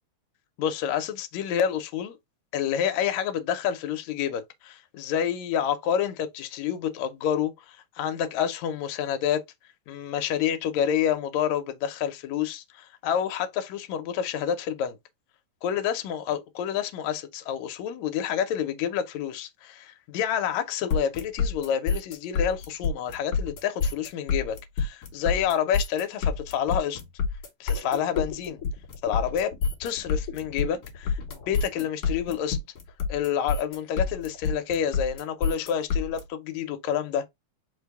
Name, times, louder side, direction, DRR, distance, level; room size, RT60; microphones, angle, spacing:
voice 1, 0.6-2.2 2.5-9.4 9.9-15.0 15.6-27.0 27.6-28.6 29.0-29.5 29.8-32.6 33.1-37.3, left 9 dB, 75° left, 1.9 m, -28 dB
sound 1, 20.9-36.2, left 5 dB, 55° left, 2.2 m, -28 dB
5.2 x 2.2 x 4.5 m
omnidirectional pair, 3.5 m